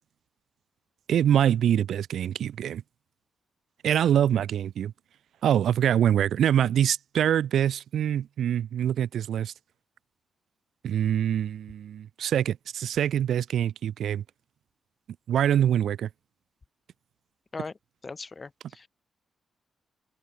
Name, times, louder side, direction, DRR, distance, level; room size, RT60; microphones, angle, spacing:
voice 1, 1.1-2.8 3.8-4.9 5.4-9.5 10.8-14.2 15.3-16.1, right 10 dB, 80° right, 0.5 m, -24 dB
voice 2, 18.0-18.9, left 4 dB, 30° left, 0.4 m, -39 dB
open air
cardioid pair, 105°, 0 cm